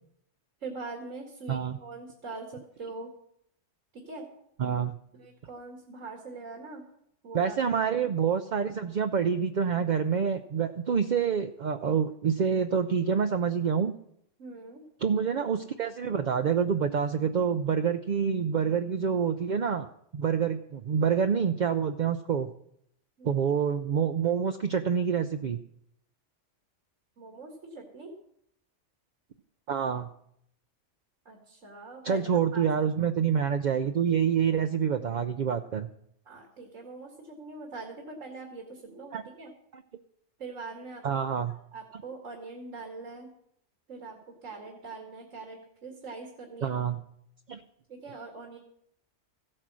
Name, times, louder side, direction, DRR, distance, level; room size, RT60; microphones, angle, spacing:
voice 1, 0.6-3.1 3.9-4.3 5.2-6.8 7.2-7.6 14.4-14.8 23.2-23.3 27.2-28.1 31.3-32.7 33.1-33.2 36.3-39.5 40.4-41.0 41.5-43.3 43.9-46.7 47.9-48.6, right 3 dB, 85° right, 2 dB, 2.3 m, -43 dB
voice 2, 1.5-1.8 4.6-4.9 7.3-13.9 15.0-22.5 23.2-25.6 29.7-30.1 32.0-35.9 39.1-39.2 39.7-39.8 41.0-41.5 46.6-47.0 47.5-47.6, right 7 dB, 50° right, 8 dB, 0.6 m, -27 dB
15.0 x 8.8 x 6.2 m, 0.72 s
omnidirectional pair, 1.3 m